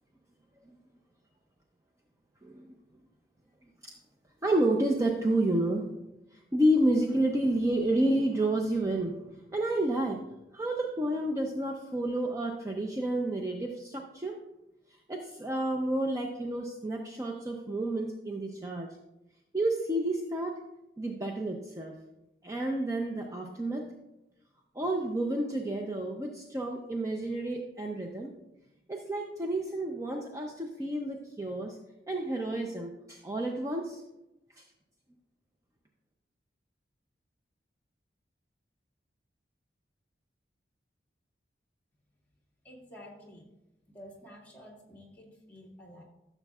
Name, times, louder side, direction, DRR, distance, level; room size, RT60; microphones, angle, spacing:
voice 1, 2.4-2.7 3.8-3.9 4.4-5.8 6.3-10.2 10.5-14.4 15.1-18.9 19.5-20.5 21.0-21.9 22.4-23.9 24.7-28.3 28.9-31.8 32.1-34.0 34.6-34.7, right 1 dB, 15° right, 1 dB, 0.5 m, -30 dB
voice 2, 42.6-43.5 43.9-46.0, equal, 10° left, -5 dB, 1.9 m, -50 dB
14.0 x 6.8 x 2.4 m, 0.94 s
head